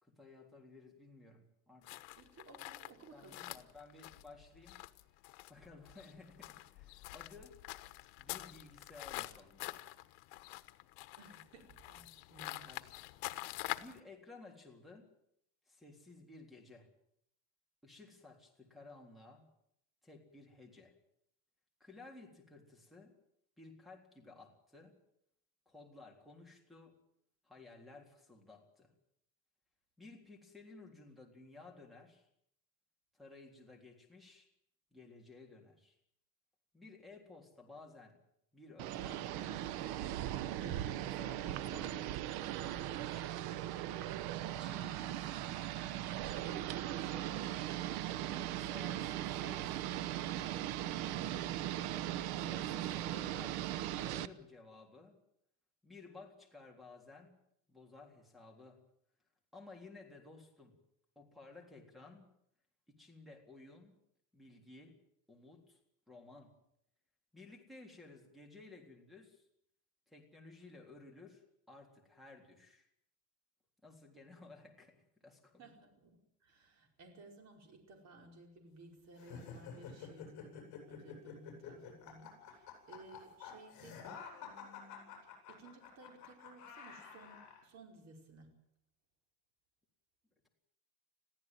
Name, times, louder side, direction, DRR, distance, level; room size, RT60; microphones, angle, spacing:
voice 1, 0.0-2.1 3.1-4.9 5.5-7.6 8.2-9.8 12.6-13.1 13.8-15.1 15.7-16.9 17.8-19.4 20.0-20.9 21.8-23.2 23.6-25.0 25.7-26.9 27.4-28.9 30.0-32.3 33.1-34.5 34.9-36.0 36.7-38.2 38.5-39.8 40.6-42.2 42.5-43.5 44.5-45.7 46.3-47.6 48.3-49.9 50.3-51.7 52.3-53.6 54.0-55.2 55.8-57.4 57.7-58.8 59.5-60.8 61.2-62.3 62.9-63.9 64.3-65.0 65.3-65.8 66.1-66.5 67.3-69.4 70.1-72.9 73.8-75.7, left 3 dB, ahead, -3 dB, 3.7 m, -56 dB
sound 1, 1.8-14.0, left 20 dB, 85° left, 1.2 m, -46 dB
voice 2, 2.2-3.6 11.2-12.7 75.6-84.0 84.3-85.2 85.5-88.6, right 2 dB, 40° right, 3 dB, 5.1 m, -58 dB
sound 2, 38.8-54.3, right 12 dB, 65° right, 1.1 m, -39 dB
sound 3, 79.2-87.6, left 6 dB, 45° left, 7.9 m, -50 dB
22.0 x 15.0 x 9.2 m, 0.76 s
cardioid pair, 160°, 40 cm